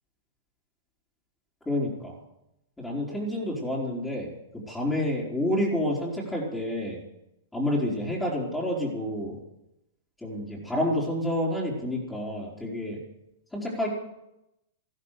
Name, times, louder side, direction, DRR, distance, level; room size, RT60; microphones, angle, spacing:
voice 1, 1.7-2.1 2.8-7.0 7.5-9.4 10.2-13.0 13.5-13.9, left 1 dB, 10° left, -6 dB, 4.3 m, -29 dB
14.0 x 13.5 x 6.7 m, 0.87 s
hypercardioid pair, 120°, 0 cm